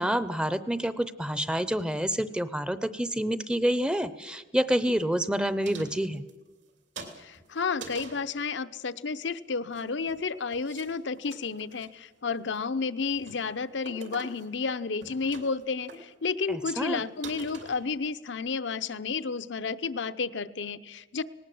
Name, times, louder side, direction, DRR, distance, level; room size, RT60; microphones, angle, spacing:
voice 1, 0.0-6.2 16.5-17.0, equal, 5° right, 14 dB, 0.6 m, -28 dB
sound 1, 5.6-6.7 7.0-8.3 9.5-10.2 10.5-10.9 11.2-11.9 12.4-12.7 13.1-13.4 13.8-14.6 14.9-15.6 15.9-16.0 16.5-16.6 16.9-17.0 17.2-18.2, right 3 dB, 75° right, 2.9 m, -45 dB
voice 2, 7.2-21.2, left 4 dB, 70° left, 12 dB, 0.7 m, -31 dB
19.0 x 18.0 x 7.8 m, 1.1 s
head